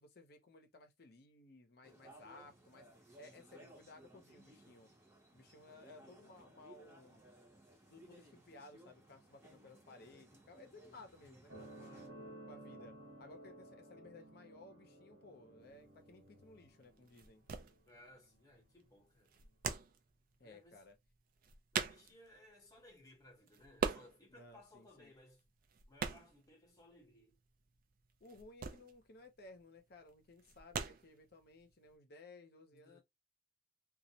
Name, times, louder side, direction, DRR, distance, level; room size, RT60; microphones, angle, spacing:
voice 1, 0.0-4.9 5.3-7.2 7.9-12.0 12.5-17.4 20.4-21.0 24.3-25.1 28.2-33.0, left 2 dB, 55° left, 0.6 m, -58 dB
sound 1, 1.8-12.1, right 1 dB, 15° right, 0.7 m, -61 dB
sound 2, 11.5-18.5 19.4-19.5, right 1 dB, 70° right, 1.1 m, -56 dB
sound 3, 15.7-31.9, right 6 dB, 50° right, 0.4 m, -44 dB
voice 2, 17.9-19.4 20.4-20.8 21.7-25.4 25.9-27.4 32.7-33.0, left 1 dB, 20° left, 0.9 m, -62 dB
2.3 x 2.0 x 2.7 m
head